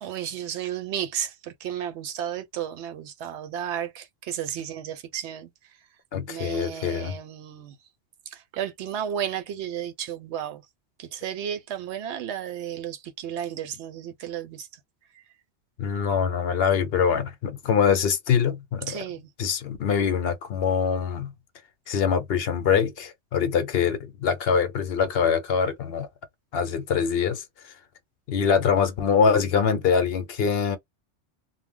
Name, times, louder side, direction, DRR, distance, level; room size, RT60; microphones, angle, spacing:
voice 1, 0.0-5.5 6.3-7.7 8.3-10.6 11.0-14.7 18.9-19.3, right 9 dB, 80° right, 0.9 m, -33 dB
voice 2, 6.1-7.2 15.8-19.0 19.4-21.3 21.9-26.1 26.5-27.7 28.3-30.8, left 6 dB, 65° left, 0.8 m, -24 dB
2.2 x 2.1 x 3.5 m
omnidirectional pair, 1.2 m